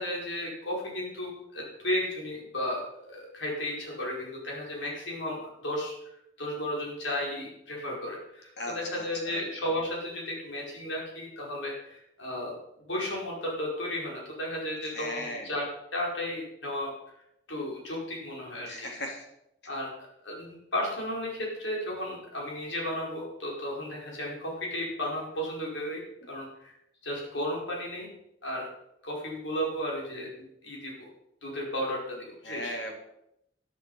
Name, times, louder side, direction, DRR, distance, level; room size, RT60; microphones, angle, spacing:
voice 1, 0.0-15.6 15.9-16.9 17.5-18.9 19.7-26.0 26.3-26.7 27.0-28.1 28.4-28.7 29.0-30.3 30.6-31.1 31.4-32.8, left 1 dB, 85° left, -2 dB, 5.1 m, -34 dB
voice 2, 8.6-9.4 15.0-15.4 18.7-19.2 32.5-33.0, left 1 dB, 65° left, 1 dB, 3.5 m, -37 dB
11.0 x 11.0 x 5.7 m, 0.81 s
head